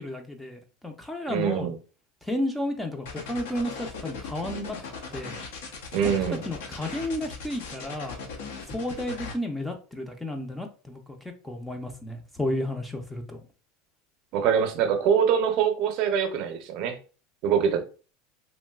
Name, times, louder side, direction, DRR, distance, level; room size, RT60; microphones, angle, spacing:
voice 1, 0.0-1.7 2.2-4.8 5.1-5.4 6.0-6.1 6.4-8.2 8.7-11.0 11.4-13.4, left 1 dB, 5° left, 0.4 m, -32 dB
voice 2, 1.3-1.7 5.9-6.4 14.3-17.0 17.4-17.8, right 7 dB, 50° right, 0.6 m, -24 dB
sound 1, 3.0-9.3, left 4 dB, 85° left, 0.6 m, -38 dB
3.0 x 2.5 x 2.3 m
supercardioid pair, 145°, 0 cm